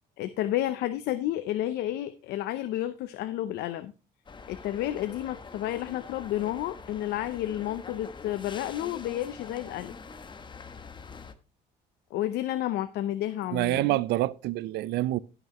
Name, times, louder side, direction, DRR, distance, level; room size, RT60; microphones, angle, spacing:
voice 1, 0.2-3.9 4.5-9.9 12.1-14.0, left 13 dB, 80° left, 0.6 m, -31 dB
sound 1, 4.3-11.3, left 5 dB, 30° left, 1.0 m, -45 dB
voice 2, 13.5-15.2, right 17 dB, 80° right, 0.5 m, -27 dB
17.0 x 6.0 x 3.0 m
cardioid pair, 110°, 17 cm